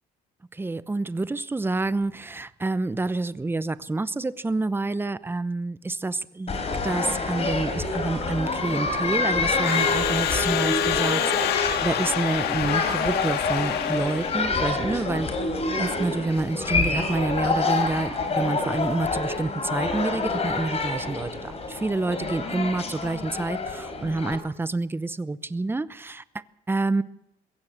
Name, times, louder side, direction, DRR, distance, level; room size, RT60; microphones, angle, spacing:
voice 1, 0.5-15.3 15.8-27.0, right 2 dB, 15° right, 16 dB, 0.8 m, -28 dB
sound 1, 6.5-24.4, left 3 dB, 40° left, 3.9 m, -27 dB
Crowd / Alarm, 9.1-14.6, left 9 dB, 75° left, 1.7 m, -27 dB
22.0 x 16.5 x 7.4 m, 0.80 s
cardioid pair, 110°, 17 cm